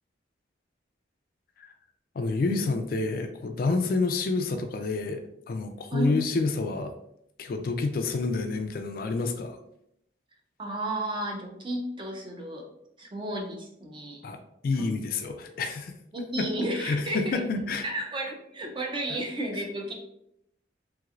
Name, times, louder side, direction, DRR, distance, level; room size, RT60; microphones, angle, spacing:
voice 1, 2.2-5.2 5.5-6.9 7.4-9.6 14.2-15.9 16.4-16.5 16.8-17.9, left 3 dB, 50° left, 6 dB, 0.3 m, -28 dB
voice 2, 5.9-6.2 10.6-12.7 13.0-14.3 14.7-14.8 16.1-17.4 17.8-19.9, right 1 dB, 25° right, 2 dB, 0.5 m, -32 dB
3.2 x 3.0 x 2.4 m, 0.76 s
head